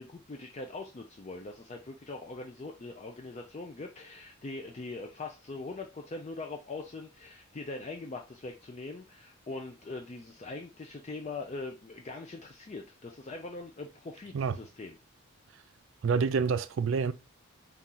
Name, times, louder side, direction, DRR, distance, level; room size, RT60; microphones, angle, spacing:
voice 1, 0.0-15.0, left 3 dB, 30° left, 0.4 m, -42 dB
voice 2, 16.0-17.1, right 5 dB, 65° right, 0.3 m, -27 dB
4.2 x 2.4 x 3.8 m
head